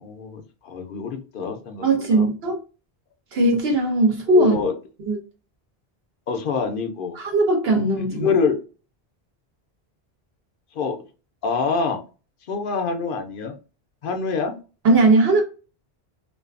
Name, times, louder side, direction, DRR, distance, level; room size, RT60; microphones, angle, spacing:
voice 1, 0.0-2.3 4.3-4.7 6.3-7.2 7.7-7.8 8.1-8.6 10.7-11.0 11.4-12.0 12.5-13.6 14.0-14.6, left 5 dB, 65° left, 0.7 m, -25 dB
voice 2, 1.8-2.6 3.3-4.5 5.1-5.2 7.2-8.3 14.8-15.4, right 2 dB, 75° right, 1.0 m, -18 dB
2.5 x 2.4 x 2.4 m
omnidirectional pair, 1.1 m